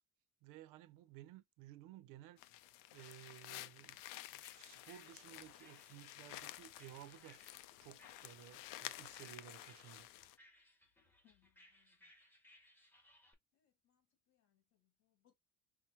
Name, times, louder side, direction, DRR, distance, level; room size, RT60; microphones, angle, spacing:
voice 1, 0.4-2.4 2.9-7.4 7.8-10.1, right 13 dB, 85° right, 0.6 m, -57 dB
sound 1, 2.4-10.4, left 15 dB, 90° left, 0.5 m, -52 dB
sound 2, 3.8-13.3, left 1 dB, 5° left, 0.8 m, -68 dB
voice 2, 11.2-12.1 13.5-15.3, left 12 dB, 55° left, 1.7 m, -77 dB
5.7 x 2.0 x 2.7 m
cardioid pair, 170°, 32 cm